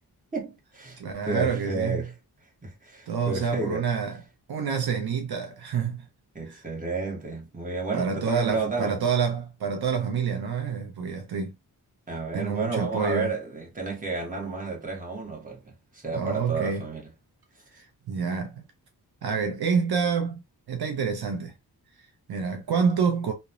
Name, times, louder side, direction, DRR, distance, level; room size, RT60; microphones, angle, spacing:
voice 1, 0.3-2.1 2.6-3.9 6.3-9.0 12.1-17.0, right 3 dB, 20° right, 1.1 m, -31 dB
voice 2, 1.0-2.1 3.1-4.2 4.5-6.1 6.5-6.6 7.9-11.5 12.3-13.3 16.1-16.8 17.7-18.6 19.2-20.4 20.7-21.5 22.0-23.3, right 6 dB, 70° right, 0.6 m, -28 dB
2.9 x 2.1 x 2.4 m
wide cardioid pair, 115°, 39 cm